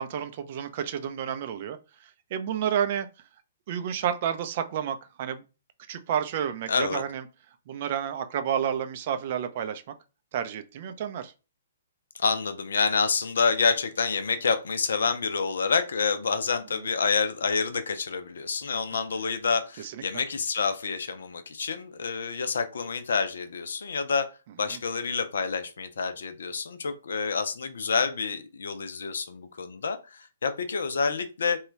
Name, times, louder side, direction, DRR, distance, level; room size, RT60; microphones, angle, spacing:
voice 1, 0.0-1.8 2.0-3.1 3.7-5.4 5.9-7.2 7.7-9.8 10.3-11.3 19.8-20.2 24.7-24.8, right 9 dB, 45° right, 0.4 m, -30 dB
voice 2, 6.7-7.0 12.1-24.3 24.6-31.6, left 5 dB, 65° left, 0.5 m, -28 dB
3.1 x 2.2 x 3.1 m
figure-of-eight pair, 125°, 0 cm